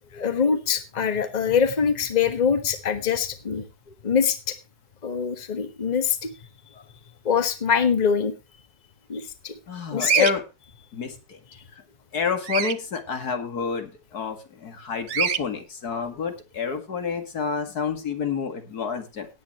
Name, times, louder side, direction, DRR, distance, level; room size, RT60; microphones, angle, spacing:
voice 1, 0.1-3.6 4.0-4.6 5.0-6.3 7.2-8.3 9.1-9.5 9.9-10.3, left 6 dB, 30° left, 9 dB, 1.3 m, -23 dB
voice 2, 9.7-10.4 10.9-11.4 12.1-19.3, left 6 dB, 85° left, 6 dB, 2.5 m, -29 dB
Bird vocalization bird call bird song, 10.0-10.3 12.4-12.8 15.1-15.4, right 8 dB, 55° right, 0.8 m, -24 dB
18.0 x 8.8 x 3.0 m, 0.28 s
omnidirectional pair, 1.6 m